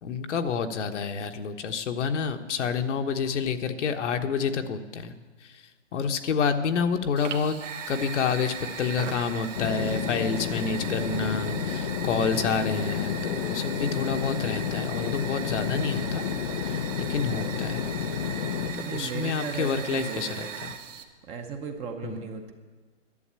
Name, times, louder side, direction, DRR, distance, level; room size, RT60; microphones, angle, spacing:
voice 1, 0.0-5.1 5.4-5.6 5.9-7.6 7.9-16.3 16.6-17.8 18.7-20.7 22.0-22.2, left 5 dB, 70° left, 6 dB, 1.2 m, -29 dB
Fire, 7.2-21.0, right 6 dB, 80° right, 1.6 m, -38 dB
sound 1, 9.6-18.7, left 8 dB, 35° left, 0.5 m, -31 dB
voice 2, 18.8-20.6 21.3-22.5, right 5 dB, 15° right, 5 dB, 0.8 m, -36 dB
11.0 x 7.8 x 9.8 m, 1.4 s
hypercardioid pair, 150°, 37 cm